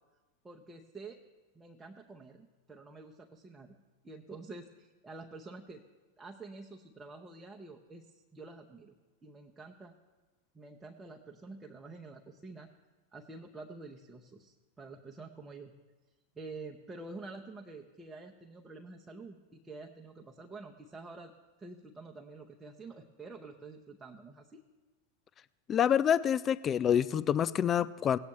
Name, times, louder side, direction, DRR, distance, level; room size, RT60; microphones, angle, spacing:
voice 1, 0.4-1.2 1.5-3.8 4.0-5.8 6.2-8.0 8.3-8.9 9.2-9.9 10.5-12.7 13.1-15.7 16.4-21.3 21.6-24.6, right 3 dB, 10° right, 1 dB, 0.8 m, -48 dB
voice 2, 25.7-28.2, left 9 dB, 25° left, 16 dB, 0.3 m, -27 dB
18.0 x 8.3 x 3.2 m, 1.2 s
figure-of-eight pair, 90°, 0 cm